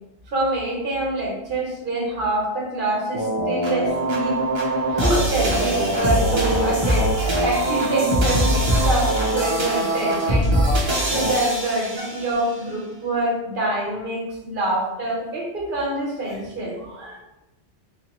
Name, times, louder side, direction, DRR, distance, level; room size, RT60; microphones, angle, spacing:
voice 1, 0.3-4.4 4.9-10.6 11.1-17.2, right 1 dB, 50° right, -3 dB, 1.2 m, -25 dB
sound 1, 3.1-12.4, right 1 dB, 30° right, 0.6 m, -22 dB
4.0 x 2.6 x 2.9 m, 0.98 s
omnidirectional pair, 1.1 m